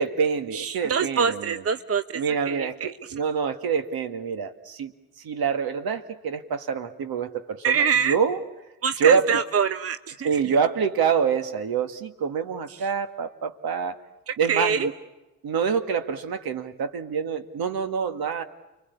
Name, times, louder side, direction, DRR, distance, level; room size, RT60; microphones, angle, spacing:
voice 1, 0.0-1.5 2.1-4.9 5.2-8.4 9.0-9.4 10.2-14.0 14.4-14.9 15.4-18.4, right 6 dB, 60° right, 8 dB, 2.1 m, -26 dB
voice 2, 0.5-3.1 7.6-8.2 8.8-10.3 12.7-12.8 14.3-14.9, right 6 dB, 35° right, 10 dB, 1.1 m, -25 dB
29.5 x 23.0 x 8.4 m, 1.0 s
hypercardioid pair, 45°, 41 cm